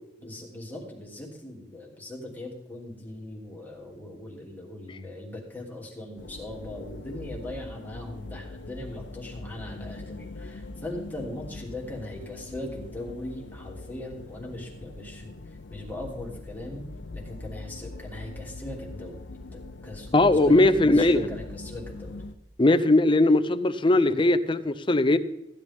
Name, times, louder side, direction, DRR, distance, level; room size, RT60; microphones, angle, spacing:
voice 1, 0.2-15.3 15.7-16.9 17.1-22.2, left 1 dB, 10° left, -3 dB, 2.9 m, -39 dB
sound 1, 6.2-22.4, left 2 dB, 80° left, 0.8 m, -42 dB
voice 2, 20.1-21.3 22.6-25.2, left 2 dB, 25° left, 12 dB, 0.6 m, -20 dB
15.5 x 11.0 x 3.6 m, 0.86 s
head